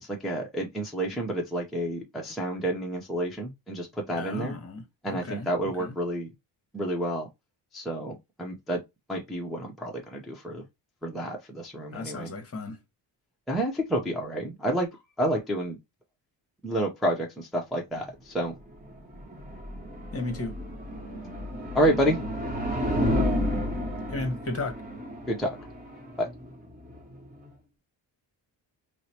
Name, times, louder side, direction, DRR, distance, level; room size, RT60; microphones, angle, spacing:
voice 1, 0.0-4.6 5.0-6.3 6.7-7.3 7.7-8.8 9.1-10.6 11.0-12.3 13.5-14.9 15.2-15.8 16.6-18.5 21.7-22.2 25.3-25.6 26.2-26.3, right 1 dB, ahead, 0.5 m, -29 dB
voice 2, 4.1-5.5 5.8-5.9 11.9-12.8 20.1-20.6 24.1-24.8, left 2 dB, 30° left, 0.9 m, -34 dB
sound 1, 18.6-27.5, left 1 dB, 20° right, 1.0 m, -32 dB
4.6 x 2.0 x 2.7 m
wide cardioid pair, 150°, 44 cm